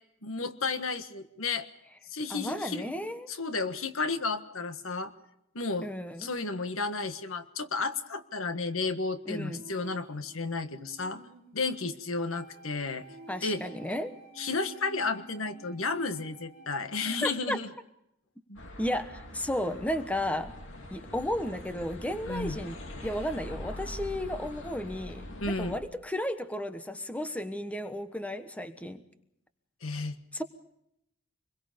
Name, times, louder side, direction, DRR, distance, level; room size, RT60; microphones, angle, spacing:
voice 1, 0.2-1.7 2.1-2.9 3.3-5.1 5.5-5.9 6.2-11.2 11.5-13.1 13.4-13.6 14.4-17.7 18.5-18.6 22.3-22.6 25.4-25.8 29.8-30.2, left 3 dB, 85° left, 9 dB, 1.5 m, -32 dB
voice 2, 2.3-3.3 5.8-6.3 9.3-9.6 13.3-14.2 17.0-17.6 18.8-20.5 20.9-29.0 30.3-30.4, left 1 dB, 5° left, 9 dB, 1.2 m, -34 dB
Female singing, 9.3-17.0, right 1 dB, 40° right, 3.6 m, -53 dB
Wind instrument woodwind instrument, 12.3-17.4, right 5 dB, 45° left, 3.3 m, -55 dB
sound 1, 18.6-25.8, left 1 dB, 65° left, 3.2 m, -43 dB
26.5 x 22.0 x 5.2 m, 0.79 s
head